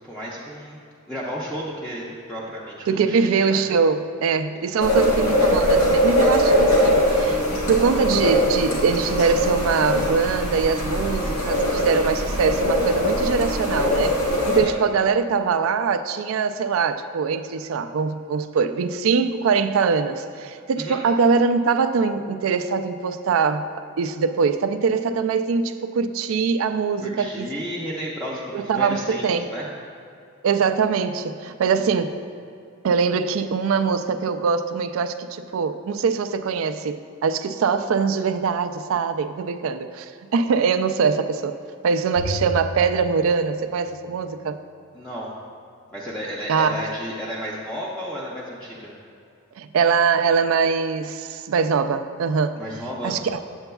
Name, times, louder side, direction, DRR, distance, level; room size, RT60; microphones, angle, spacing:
voice 1, 0.0-0.8 1.1-3.6 4.6-5.0 14.5-14.7 20.8-21.0 27.0-29.7 31.7-32.0 44.9-45.3 45.9-48.9 52.6-53.2, equal, 5° left, -7 dB, 0.6 m, -33 dB
voice 2, 2.9-7.4 7.7-14.2 14.5-23.7 24.0-27.5 28.5-29.5 30.4-32.2 32.8-41.6 41.8-44.6 46.5-46.8 49.6-52.6 53.0-53.4, right 5 dB, 75° right, 10 dB, 0.3 m, -22 dB
sound 1, 4.8-14.6, left 1 dB, 90° left, 1.6 m, -21 dB
Bowed string instrument, 42.2-44.7, left 1 dB, 45° left, 0.8 m, -35 dB
7.9 x 7.8 x 2.3 m, 2.6 s
head